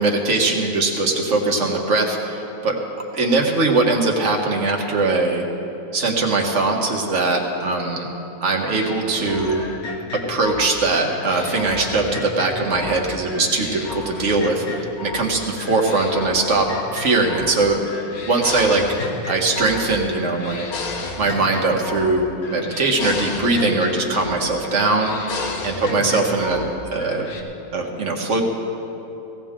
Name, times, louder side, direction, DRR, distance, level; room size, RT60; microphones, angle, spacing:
voice 1, 0.0-2.8 3.1-5.4 5.9-8.1 8.4-9.6 10.1-14.8 15.1-17.8 18.2-18.9 19.3-20.7 21.2-25.3 25.6-26.6 26.9-27.3 27.7-28.4, right 3 dB, 55° right, 1 dB, 1.8 m, -21 dB
sound 1, 8.7-13.0 13.3-15.3 15.6-17.6 17.8-19.9 20.1-22.2 22.4-24.4 24.7-26.7 27.0-27.4, left 3 dB, 80° left, 1.6 m, -32 dB
17.0 x 17.0 x 3.7 m, 2.9 s
omnidirectional pair, 1.5 m